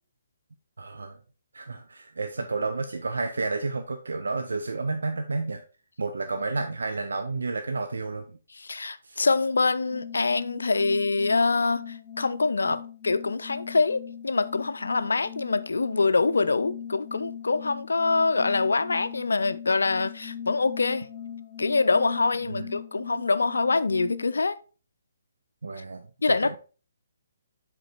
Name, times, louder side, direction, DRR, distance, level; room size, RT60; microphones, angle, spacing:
voice 1, 0.8-1.2 1.5-5.6 6.0-8.2 9.0-9.2 22.5-22.8 25.6-26.6, right 3 dB, 65° right, 0.6 m, -31 dB
voice 2, 8.5-21.1 21.6-24.6 26.2-26.6, left 3 dB, 65° left, 0.4 m, -25 dB
sound 1, 9.9-24.4, left 8 dB, 20° left, 1.4 m, -40 dB
7.6 x 3.7 x 4.2 m
figure-of-eight pair, 135°, 0 cm